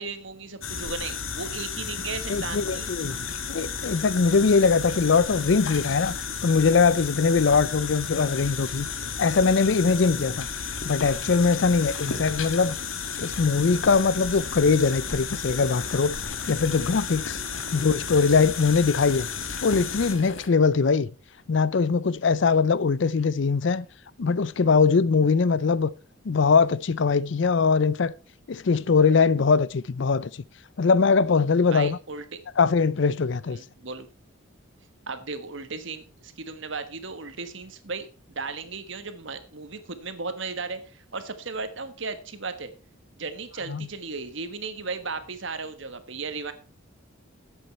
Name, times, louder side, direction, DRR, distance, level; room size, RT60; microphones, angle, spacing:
voice 1, 0.0-2.9 17.7-17.8 31.7-32.4 33.4-34.1 35.1-38.1 38.3-42.7 43.2-46.5, right 4 dB, 65° right, 1.4 m, -35 dB
sound 1, 0.6-20.5, left 6 dB, 75° left, 1.5 m, -33 dB
voice 2, 2.3-3.2 3.5-8.9 9.2-10.5 10.8-12.8 13.2-16.2 16.5-17.4 17.7-19.3 19.6-21.1 21.5-23.9 24.2-25.9 26.2-28.1 28.5-30.4 30.8-32.0 32.6-33.6 43.7-43.9, left 5 dB, 60° left, 0.5 m, -21 dB
11.0 x 8.1 x 4.5 m
head